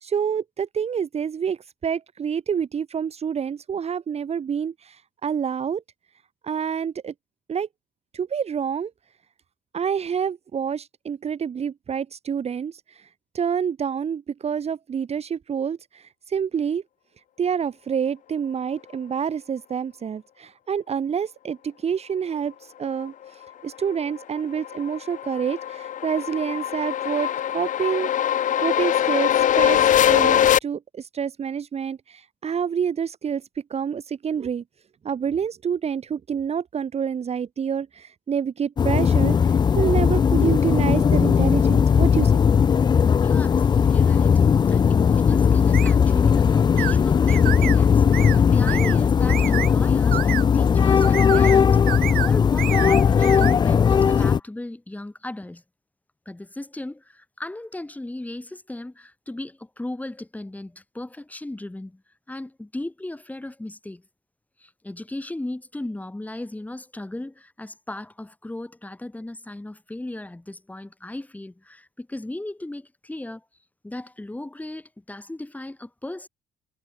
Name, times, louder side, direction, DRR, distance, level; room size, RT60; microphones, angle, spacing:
voice 1, 0.0-5.8 6.4-7.1 7.5-7.7 8.1-8.9 9.7-13.1 13.3-16.8 17.4-27.3 27.5-28.1 28.6-33.4 33.7-34.6 35.0-42.4, right 7 dB, 40° right, 1.8 m, -27 dB
sound 1, 24.0-30.6, left 10 dB, 50° left, 0.9 m, -22 dB
sound 2, 38.8-54.4, left 7 dB, 25° left, 0.4 m, -18 dB
voice 2, 42.8-55.6 56.3-62.0 62.3-64.0 64.6-73.4 73.8-76.3, left 1 dB, 10° left, 5.7 m, -36 dB
sound 3, 45.7-45.9 46.8-47.0 47.3-47.8 48.1-48.4 48.7-49.0 49.3-49.7 50.1-50.5 51.0-51.6 51.9-52.3 52.6-53.5, right 14 dB, 60° right, 0.7 m, -29 dB
cardioid pair, 110°, 17 cm